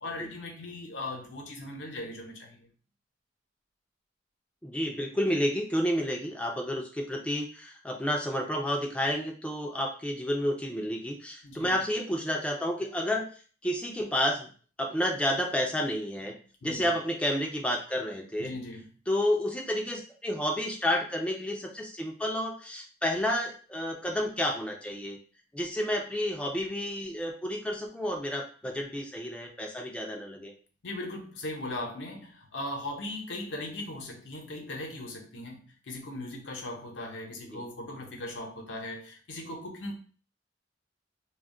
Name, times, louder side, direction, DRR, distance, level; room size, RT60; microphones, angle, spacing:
voice 1, 0.0-2.7 11.4-11.8 16.6-16.9 18.4-18.9 30.8-39.9, left 1 dB, 85° left, 1 dB, 0.7 m, -39 dB
voice 2, 4.6-13.3 13.6-14.5 14.8-16.4 16.6-18.5 19.1-25.2 25.5-30.5 37.5-37.6, equal, 5° left, 2 dB, 0.3 m, -30 dB
2.3 x 2.1 x 3.6 m, 0.39 s
head